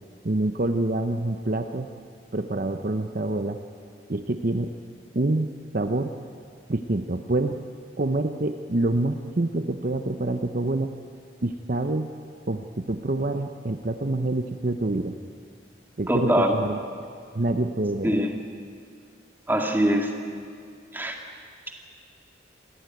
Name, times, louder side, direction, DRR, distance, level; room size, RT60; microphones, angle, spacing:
voice 1, 0.2-1.9 2.3-3.6 4.1-4.7 5.1-5.5 5.7-6.1 6.7-7.6 8.0-10.9 11.4-12.1 12.5-15.1 16.0-16.8 17.3-18.1, right 2 dB, 50° right, 7 dB, 0.8 m, -26 dB
voice 2, 16.1-16.6 18.0-18.4 19.5-20.1 20.9-21.2, equal, 10° right, 2 dB, 2.1 m, -23 dB
26.5 x 15.0 x 9.4 m, 2.2 s
head